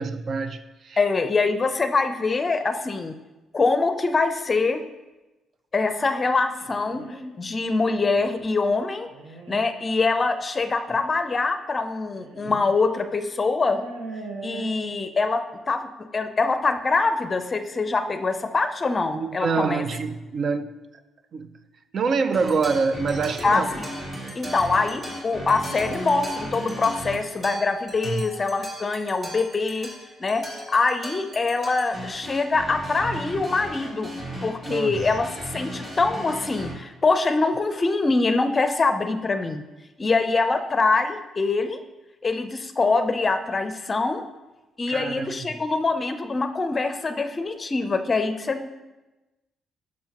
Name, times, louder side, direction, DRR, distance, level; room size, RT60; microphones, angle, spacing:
voice 1, 0.0-1.0 19.1-20.7 21.3-21.5 21.9-23.7 28.0-28.2 34.7-35.0 44.9-45.5, right 4 dB, 55° right, 0.4 m, -26 dB
voice 2, 1.0-3.1 3.5-4.8 5.7-7.0 7.3-9.1 9.5-13.9 14.4-19.8 23.4-23.8 24.3-29.9 30.2-34.1 34.4-39.6 40.0-41.8 42.2-44.2 44.8-48.7, left 3 dB, 30° left, 0.5 m, -24 dB
sound 1, 6.6-7.3 8.0-8.5 9.1-9.6 10.9-11.0 12.1-12.7 13.0-13.1 13.6-14.7, right 2 dB, 75° right, 1.0 m, -39 dB
sound 2, 22.3-36.7, right 1 dB, 35° right, 2.2 m, -36 dB
10.0 x 6.3 x 2.9 m
cardioid pair, 90°, 0 cm